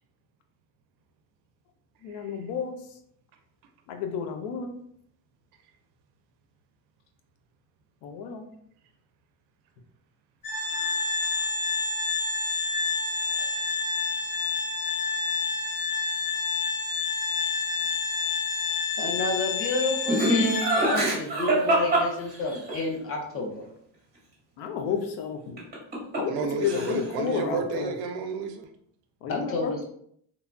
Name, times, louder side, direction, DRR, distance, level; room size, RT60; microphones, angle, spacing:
voice 1, 2.0-2.7 3.9-4.7 8.0-8.4 13.4-13.5 24.6-25.6 26.2-27.9 29.2-29.8, left 6 dB, 90° left, 5 dB, 0.6 m, -31 dB
Organ, 10.4-21.1, left 4 dB, 15° left, 1.1 m, -29 dB
voice 2, 10.6-11.1 11.4-11.5 13.2-13.8 26.3-28.7, right 5 dB, 60° right, 6 dB, 0.5 m, -33 dB
voice 3, 19.0-23.6 29.3-29.8, left 2 dB, 30° left, 0 dB, 0.6 m, -30 dB
Laughter, 20.1-22.8 25.6-26.4 26.6-27.2, right 1 dB, 20° right, 0.9 m, -24 dB
3.0 x 2.1 x 2.5 m, 0.67 s
cardioid pair, 150°, 45 cm